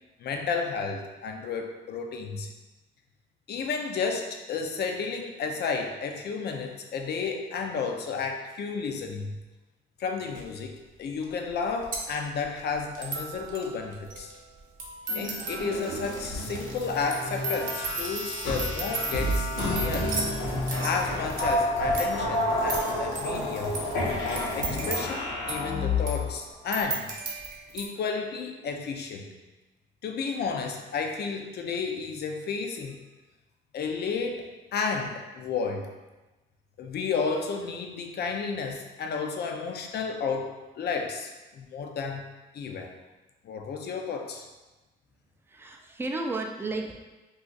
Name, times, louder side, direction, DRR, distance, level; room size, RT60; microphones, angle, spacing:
voice 1, 0.2-2.5 3.5-9.4 10.0-14.3 15.2-20.3 20.8-23.8 24.2-27.1 27.7-29.4 30.0-33.0 33.7-35.9 36.8-42.3 42.5-42.9 43.4-44.5, left 5 dB, 55° left, 4 dB, 0.5 m, -32 dB
sound 1, 10.4-10.5 11.2-11.3 11.5-27.9, right 3 dB, 45° right, 0.8 m, -37 dB
sound 2, 15.1-26.3, left 1 dB, 90° left, 0.9 m, -30 dB
sound 3, 15.9-20.7 21.0-21.1, right 5 dB, 75° right, 0.5 m, -47 dB
voice 2, 45.5-46.9, right 2 dB, 10° right, 2 dB, 0.4 m, -33 dB
2.4 x 2.4 x 3.8 m, 1.1 s
cardioid pair, 90°, 20 cm